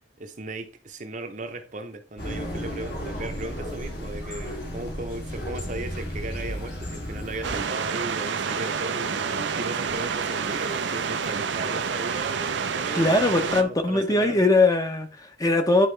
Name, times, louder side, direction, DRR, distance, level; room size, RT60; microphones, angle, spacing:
voice 1, 0.2-14.5, right 2 dB, 40° right, 0.8 m, -36 dB
sound 1, 2.2-7.6, equal, 60° left, 3.0 m, -33 dB
sound 2, 7.4-13.6, right 6 dB, 75° right, 0.6 m, -28 dB
voice 2, 12.9-15.9, left 2 dB, 20° left, 0.9 m, -21 dB
10.0 x 4.3 x 3.3 m
head